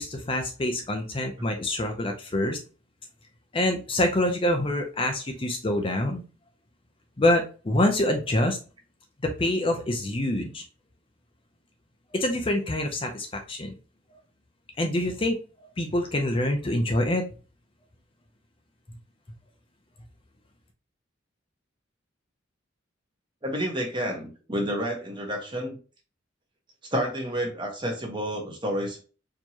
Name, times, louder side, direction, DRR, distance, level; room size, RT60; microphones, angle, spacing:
voice 1, 0.0-2.6 3.5-6.2 7.2-8.6 9.2-10.6 12.1-13.7 14.8-15.4 15.8-17.2, left 1 dB, 25° left, 3 dB, 0.5 m, -26 dB
voice 2, 23.4-25.8 26.9-29.0, equal, 25° right, 1 dB, 1.1 m, -30 dB
4.4 x 3.0 x 2.8 m, 0.36 s
head